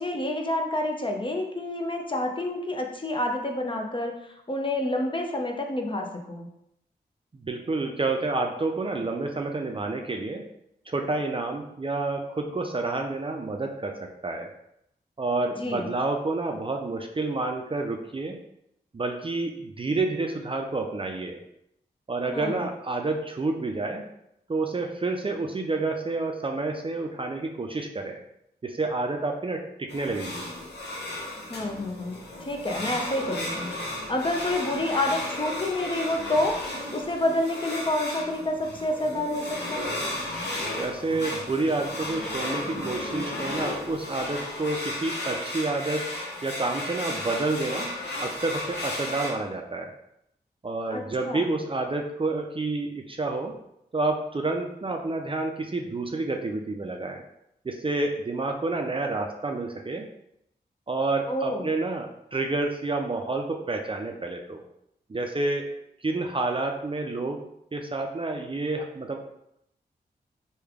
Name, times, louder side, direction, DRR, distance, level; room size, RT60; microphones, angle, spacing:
voice 1, 0.0-6.5 15.6-15.8 22.3-22.6 31.5-33.7 34.1-36.6 36.9-40.0 50.9-51.5 61.3-61.7, left 1 dB, 30° left, 2 dB, 0.6 m, -28 dB
voice 2, 7.4-10.4 10.9-14.5 15.2-18.4 18.9-21.4 22.1-24.1 24.5-28.2 28.6-30.5 40.8-46.0 46.4-47.9 48.2-49.9 50.6-53.5 53.9-57.2 57.6-60.1 60.9-64.6 65.1-65.7 66.0-67.4 67.7-69.2, right 3 dB, 30° right, 3 dB, 0.4 m, -29 dB
sound 1, 29.9-49.3, left 1 dB, 75° left, 0.8 m, -34 dB
3.2 x 2.3 x 3.5 m, 0.79 s
cardioid pair, 40°, 18 cm